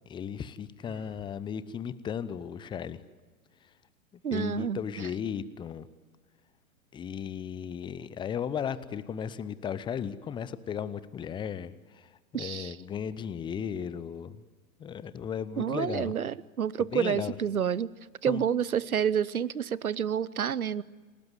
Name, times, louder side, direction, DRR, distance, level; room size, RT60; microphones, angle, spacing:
voice 1, 0.1-3.0 4.3-5.9 6.9-14.4 14.8-16.1 16.8-17.3 18.3-18.4, left 8 dB, 10° left, 16 dB, 0.7 m, -35 dB
Sigh, 0.8-1.3, right 3 dB, 15° right, 2.7 m, -51 dB
voice 2, 4.2-5.1 12.3-12.8 15.6-17.9 18.2-20.8, right 8 dB, 80° right, 22 dB, 0.9 m, -29 dB
28.0 x 18.5 x 9.4 m, 1.3 s
figure-of-eight pair, 110°, 43 cm